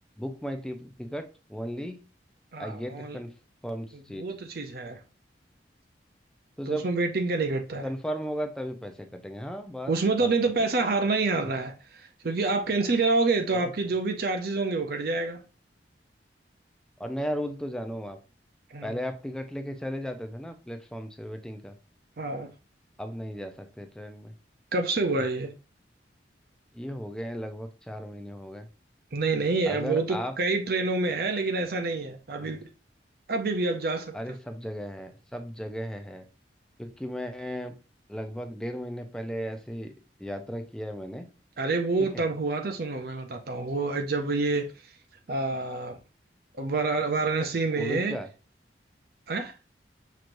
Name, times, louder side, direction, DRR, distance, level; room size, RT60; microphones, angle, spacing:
voice 1, 0.2-2.0 2.6-3.3 3.6-4.2 6.6-6.8 7.8-9.9 10.2-10.3 13.5-13.7 17.0-18.2 18.8-21.8 23.0-24.3 26.7-28.7 29.6-30.3 32.4-32.6 34.1-36.2 36.8-37.7 38.1-39.9 40.2-41.3 42.1-42.2 47.7-48.3, equal, 5° left, 0.5 m, -35 dB
voice 2, 2.5-3.2 4.2-5.0 6.7-7.9 9.9-15.4 18.7-19.0 22.2-22.5 24.7-25.5 29.1-32.7 33.3-34.1 41.6-45.0 45.3-46.0 46.6-48.1 49.3-49.6, right 3 dB, 55° right, 0.6 m, -27 dB
6.0 x 3.1 x 2.6 m
head